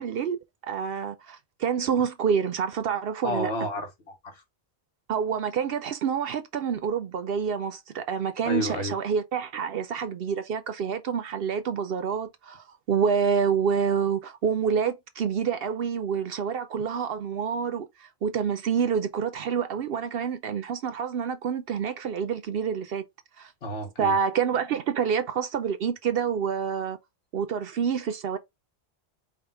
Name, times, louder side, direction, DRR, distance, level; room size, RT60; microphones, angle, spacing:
voice 1, 0.0-3.5 5.1-23.0 23.4-23.5 24.0-27.0 27.3-28.4, right 7 dB, 65° right, 0.8 m, -27 dB
voice 2, 3.2-4.4 8.4-9.0 23.6-24.2, left 1 dB, 70° left, 1.4 m, -31 dB
5.1 x 2.4 x 3.4 m
omnidirectional pair, 1.1 m